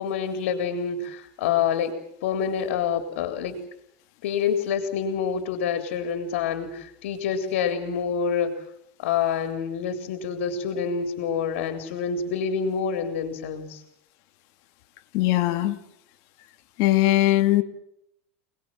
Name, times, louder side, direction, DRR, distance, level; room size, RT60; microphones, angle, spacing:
voice 1, 0.0-1.9 2.2-3.6 4.2-8.6 9.0-13.8, left 7 dB, 85° left, 8 dB, 3.6 m, -27 dB
voice 2, 15.1-15.8 16.8-17.6, left 15 dB, 50° left, 9 dB, 2.5 m, -20 dB
28.0 x 20.5 x 7.6 m, 0.77 s
supercardioid pair, 160°, 7 cm